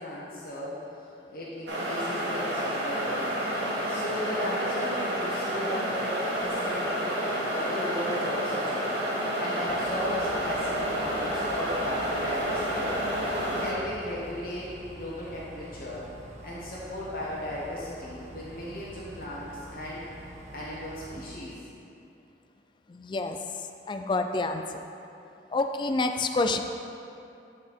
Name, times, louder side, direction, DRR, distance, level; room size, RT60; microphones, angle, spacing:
voice 1, 0.0-3.3 3.9-6.9 7.5-8.9 9.3-12.9 13.6-16.1 16.4-20.1 20.5-21.6, left 1 dB, 55° left, -7 dB, 1.1 m, -36 dB
sound 1, 1.7-13.7, equal, 85° right, 1.5 m, -29 dB
sound 2, 9.7-21.3, right 1 dB, 40° right, 0.6 m, -46 dB
voice 2, 22.9-23.4 23.9-24.8 25.5-26.6, left 3 dB, 25° left, 6 dB, 0.3 m, -28 dB
9.7 x 4.2 x 4.4 m, 2.7 s
head